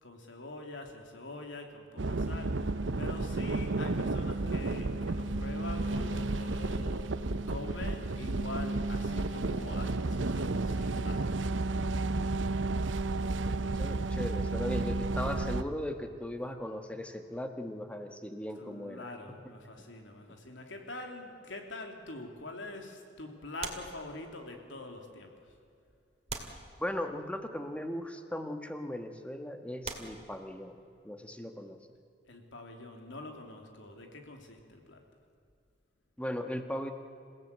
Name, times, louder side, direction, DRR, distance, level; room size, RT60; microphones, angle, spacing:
voice 1, 0.0-7.1 7.5-11.3 18.5-25.3 32.2-35.0, left 2 dB, 80° left, 3 dB, 3.0 m, -44 dB
sound 1, 2.0-15.6, right 2 dB, 85° right, 0.9 m, -32 dB
voice 2, 13.1-19.0 26.8-30.8 31.0-31.8 36.2-36.9, left 1 dB, 5° left, 6 dB, 1.4 m, -38 dB
sound 2, 23.6-24.7 25.4-25.5 26.3-27.4 28.3-28.5 29.2-29.3 29.8-31.0 32.9-34.7 35.0-35.2, right 4 dB, 35° right, 2.3 m, -44 dB
28.0 x 16.5 x 8.2 m, 2.5 s
head